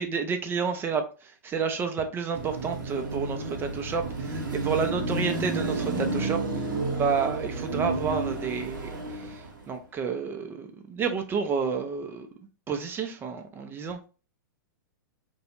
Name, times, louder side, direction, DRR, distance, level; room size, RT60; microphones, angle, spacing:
voice 1, 0.0-6.6 6.9-12.3 12.7-14.0, right 6 dB, 20° right, 0.4 m, -30 dB
Car passing by / Traffic noise roadway noise / Engine, 2.3-9.7, right 2 dB, 75° right, 0.8 m, -31 dB
2.5 x 2.1 x 2.9 m
hypercardioid pair, 115°, 11 cm